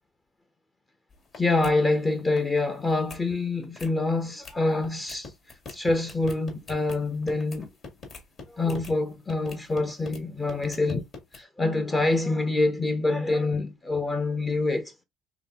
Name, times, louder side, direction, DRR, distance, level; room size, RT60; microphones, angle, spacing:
sound 1, 1.1-1.4 1.6-1.8 2.1-2.6 2.9-3.2 3.6-3.9 4.4-4.6 4.8-8.9 9.3-10.2 10.5-11.4, left 4 dB, 45° left, 1.9 m, -44 dB
voice 1, 1.4-5.3 5.7-7.7 8.5-11.0 11.3-15.0, left 2 dB, 20° left, 0.7 m, -26 dB
3.8 x 3.3 x 2.8 m
supercardioid pair, 85°, 0 cm